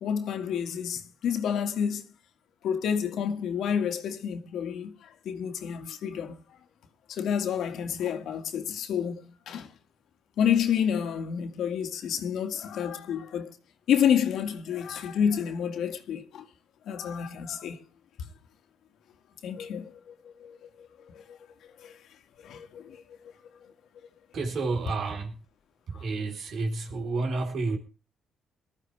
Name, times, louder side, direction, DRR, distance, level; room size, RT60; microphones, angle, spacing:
voice 1, 0.0-2.0 2.6-6.6 7.1-9.7 10.4-13.6 13.9-16.5 16.9-17.8 18.2-18.3 19.4-21.4 21.8-22.0 22.4-23.6 25.9-26.0, left 8 dB, 75° left, 2.0 m, -30 dB
voice 2, 24.3-25.4 25.9-27.8, right 3 dB, 65° right, 3.9 m, -30 dB
19.5 x 13.5 x 3.4 m
cardioid pair, 90°, 0 cm